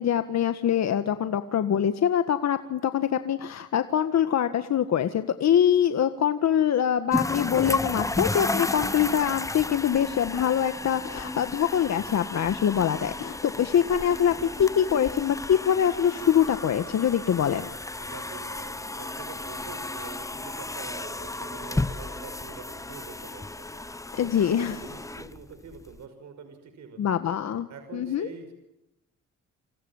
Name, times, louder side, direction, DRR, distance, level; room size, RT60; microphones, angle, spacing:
voice 1, 0.0-17.7 24.1-24.8 27.0-28.3, left 9 dB, 60° left, 9 dB, 1.7 m, -24 dB
sound 1, 7.1-26.0, left 2 dB, 10° left, 1.0 m, -33 dB
voice 2, 18.0-27.2 27.7-28.5, right 5 dB, 65° right, 7 dB, 5.8 m, -45 dB
28.0 x 27.0 x 7.4 m, 0.89 s
cardioid pair, 90°, 30 cm